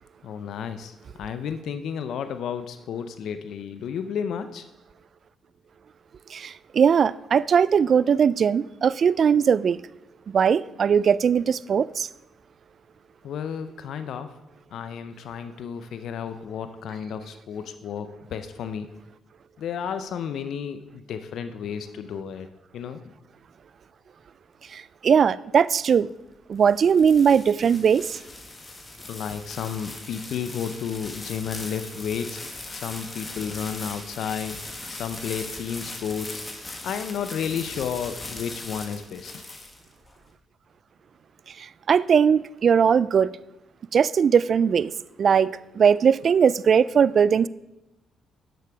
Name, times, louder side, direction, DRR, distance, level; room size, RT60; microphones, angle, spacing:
voice 1, 0.2-4.6 13.2-14.3 14.7-18.9 19.6-22.5 22.7-23.0 29.1-32.4 32.7-34.6 34.9-39.4, left 7 dB, 70° left, 0.6 m, -32 dB
voice 2, 6.3-9.8 10.3-12.1 24.7-26.1 26.5-28.2 41.9-43.3 43.9-44.9 45.2-47.5, right 7 dB, 50° right, 0.3 m, -20 dB
sound 1, 26.3-40.1, left 2 dB, 25° left, 1.6 m, -39 dB
10.0 x 6.7 x 5.0 m
cardioid pair, 90°, 0 cm